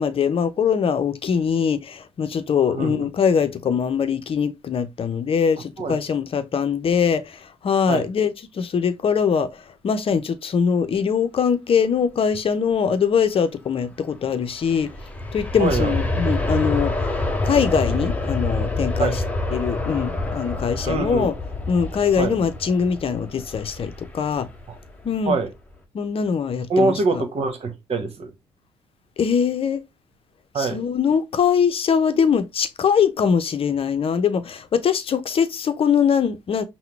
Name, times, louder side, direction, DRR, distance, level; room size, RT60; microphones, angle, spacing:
voice 1, 0.0-14.9 15.3-17.2 17.4-19.2 19.5-21.3 21.7-24.5 25.0-25.4 25.9-27.2 29.2-29.8 30.6-36.6, left 7 dB, 45° left, 0.7 m, -22 dB
voice 2, 2.7-3.1 5.8-5.9 7.9-8.1 15.6-15.9 19.0-19.1 20.9-21.3 22.2-22.3 24.7-24.8 25.3-25.5 26.7-28.3 30.5-30.8, right 3 dB, 50° right, 1.3 m, -24 dB
Aircraft, 14.4-25.3 25.7-25.8, left 2 dB, 10° left, 0.9 m, -27 dB
5.7 x 2.2 x 3.3 m
hypercardioid pair, 55°, 14 cm